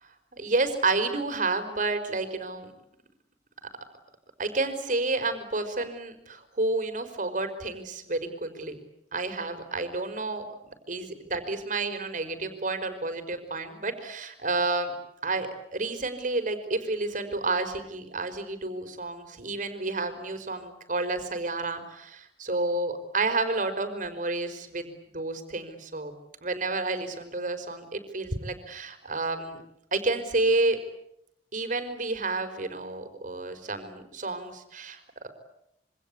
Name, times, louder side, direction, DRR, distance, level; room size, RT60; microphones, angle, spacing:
voice 1, 0.3-2.7 4.4-8.8 9.1-14.9 15.2-26.1 26.4-29.6 29.9-30.8 31.5-35.3, right 3 dB, 45° right, 8 dB, 4.8 m, -30 dB
27.0 x 25.5 x 8.6 m, 0.79 s
head